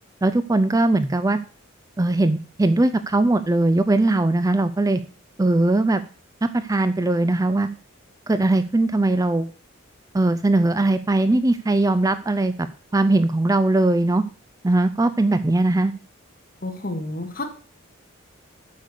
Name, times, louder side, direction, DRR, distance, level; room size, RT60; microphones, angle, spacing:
voice 1, 0.2-1.4 2.0-5.0 5.4-6.0 6.5-7.7 8.3-9.5 10.1-12.7 12.9-14.2 14.6-15.9, right 2 dB, 15° right, 12 dB, 0.4 m, -20 dB
voice 2, 16.6-17.4, left 2 dB, 45° left, 4 dB, 1.9 m, -30 dB
8.3 x 6.6 x 6.6 m, 0.38 s
head